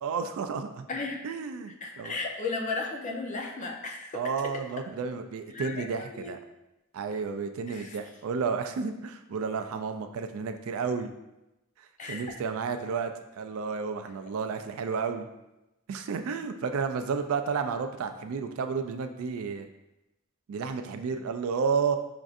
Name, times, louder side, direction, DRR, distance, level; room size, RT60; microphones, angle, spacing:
voice 1, 0.0-0.9 1.2-2.2 4.1-6.4 6.9-11.1 12.1-15.3 15.9-19.7 20.5-22.0, right 5 dB, 70° right, 7 dB, 0.3 m, -31 dB
voice 2, 0.9-1.2 1.8-4.2 5.5-6.3 7.7-8.0 12.0-12.4, left 3 dB, 35° left, 1 dB, 0.5 m, -35 dB
5.9 x 2.5 x 2.4 m, 0.94 s
head